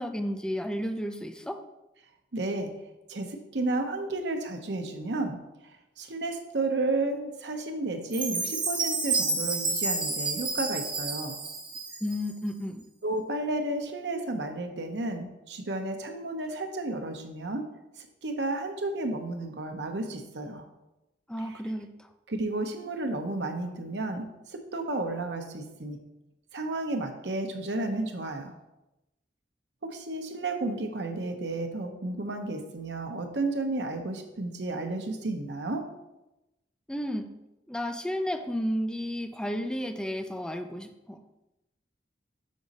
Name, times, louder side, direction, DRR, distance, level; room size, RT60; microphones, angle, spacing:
voice 1, 0.0-1.6 12.0-12.9 21.3-22.1 36.9-37.3 37.7-41.2, equal, 5° left, 7 dB, 0.4 m, -32 dB
voice 2, 2.3-2.7 3.1-11.4 13.0-17.7 18.0-20.6 21.5-21.6 22.3-26.0 26.5-28.6 29.8-35.9, right 2 dB, 80° right, 5 dB, 0.9 m, -32 dB
Chime, 8.1-12.3, right 3 dB, 30° right, 1.2 m, -30 dB
6.3 x 4.9 x 4.1 m, 0.96 s
head